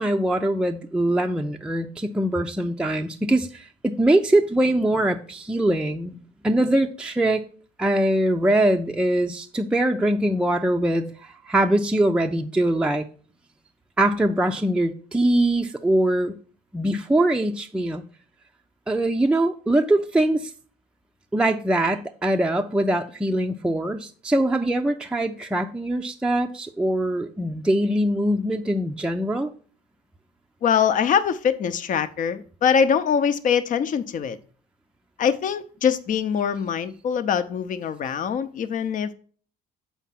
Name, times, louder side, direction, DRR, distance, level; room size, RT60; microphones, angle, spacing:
voice 1, 0.0-6.2 6.4-7.4 7.8-13.0 14.0-16.4 16.7-18.0 18.9-20.5 21.3-29.5, right 1 dB, 5° right, 0.5 m, -22 dB
voice 2, 30.6-34.4 35.2-39.1, left 7 dB, 50° left, 0.8 m, -23 dB
7.2 x 4.6 x 5.8 m
cardioid pair, 110°, 17 cm